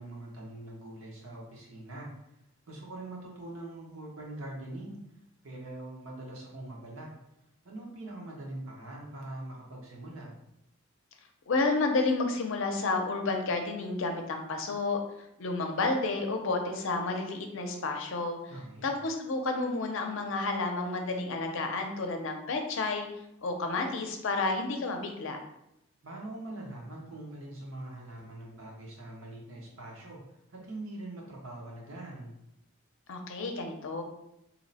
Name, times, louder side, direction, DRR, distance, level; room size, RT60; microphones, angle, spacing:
voice 1, 0.0-2.1 2.7-5.0 5.4-7.1 7.6-10.3 18.5-18.9 26.0-30.2 30.5-32.3, right 1 dB, 90° right, -2 dB, 0.9 m, -43 dB
voice 2, 11.5-15.0 15.4-18.4 18.8-23.1 23.4-25.4 33.1-34.0, left 3 dB, 65° left, 4 dB, 0.5 m, -30 dB
2.8 x 2.0 x 3.9 m, 0.82 s
head